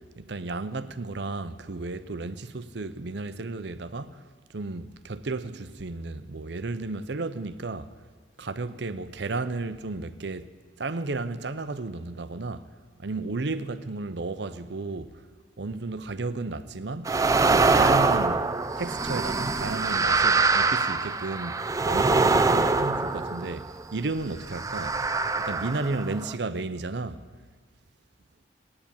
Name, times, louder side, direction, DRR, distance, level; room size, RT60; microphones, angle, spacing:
voice 1, 0.0-4.2 4.5-7.9 8.4-10.5 10.8-12.7 13.0-15.2 15.6-17.1 17.5-18.5 18.8-25.0 25.4-27.2, right 3 dB, 65° right, 0.7 m, -33 dB
sound 1, 17.1-23.8 24.5-26.3, right 3 dB, 20° right, 0.4 m, -24 dB
17.0 x 9.7 x 8.8 m
head